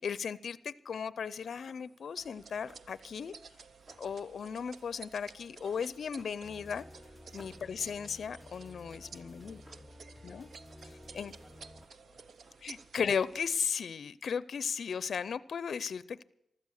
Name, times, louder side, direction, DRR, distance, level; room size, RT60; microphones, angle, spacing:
voice 1, 0.0-3.3 4.0-6.8 7.3-9.6 10.2-10.5 11.1-11.3 12.6-16.2, left 6 dB, 70° left, 18 dB, 0.5 m, -36 dB
sound 1, 1.4-6.8 7.1-9.0 9.3-10.2 10.5-11.1 11.4-12.1 12.4-13.6, right 1 dB, 45° right, 4.1 m, -62 dB
sound 2, 2.2-13.6, right 5 dB, 70° right, 0.7 m, -54 dB
sound 3, 6.4-11.9, left 1 dB, 5° left, 0.8 m, -53 dB
voice 2, 9.7-10.4 10.8-12.7, equal, 15° right, -1 dB, 4.2 m, -66 dB
15.5 x 12.5 x 6.4 m, 0.81 s
cardioid pair, 70°, 0 cm